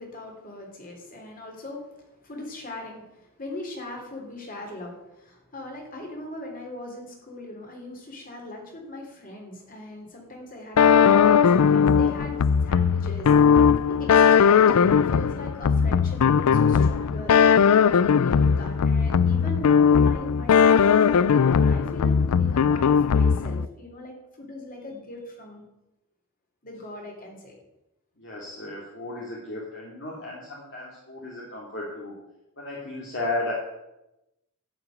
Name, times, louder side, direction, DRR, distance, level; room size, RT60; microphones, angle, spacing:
voice 1, 0.0-13.3 13.9-25.6 26.6-27.6, left 1 dB, 40° left, 0 dB, 3.4 m, -40 dB
sound 1, 10.8-23.7, left 6 dB, 85° left, 0.4 m, -19 dB
voice 2, 28.2-32.1 32.6-33.5, left 2 dB, 55° left, -5 dB, 2.7 m, -34 dB
12.0 x 5.9 x 9.0 m, 0.92 s
head